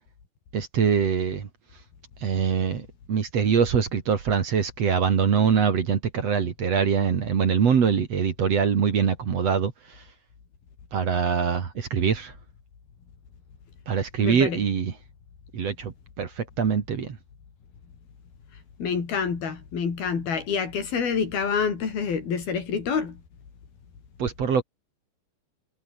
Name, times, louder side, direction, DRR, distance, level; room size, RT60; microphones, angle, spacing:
voice 1, 0.5-1.5 2.2-9.7 10.9-12.3 13.9-14.9 15.5-17.2 24.2-24.6, right 6 dB, 45° right, 3.1 m, -23 dB
voice 2, 14.2-14.6 18.8-23.2, left 6 dB, 80° left, 6.4 m, -27 dB
omnidirectional pair, 4.3 m